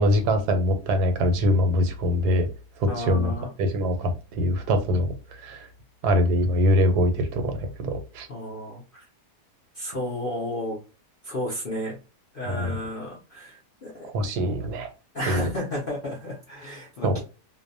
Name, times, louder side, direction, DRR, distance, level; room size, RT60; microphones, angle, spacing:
voice 1, 0.0-2.5 2.8-3.3 3.6-5.1 5.4-5.7 6.0-8.3 12.5-12.7 14.1-14.9 15.3-15.5 17.0-17.2, equal, 80° right, 1.1 m, -23 dB
voice 2, 2.9-3.5 8.3-9.0 9.7-10.8 11.2-12.0 12.3-14.1 15.1-17.2, left 1 dB, 60° left, 0.5 m, -32 dB
2.6 x 2.1 x 2.5 m
omnidirectional pair, 1.7 m